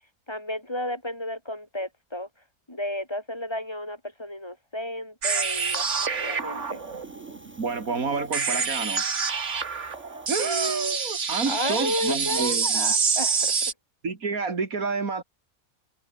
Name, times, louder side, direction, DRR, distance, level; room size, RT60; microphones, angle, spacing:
voice 1, 0.3-2.3 2.7-6.8 11.5-13.5, left 1 dB, 20° left, 4.8 m, -33 dB
sound 1, 5.2-13.7, right 5 dB, 60° right, 2.1 m, -27 dB
Wind, 5.3-10.4, equal, 10° right, 5.9 m, -44 dB
voice 2, 7.6-9.0 10.3-12.9 14.0-15.2, right 4 dB, 85° right, 3.1 m, -29 dB
omnidirectional pair, 1.4 m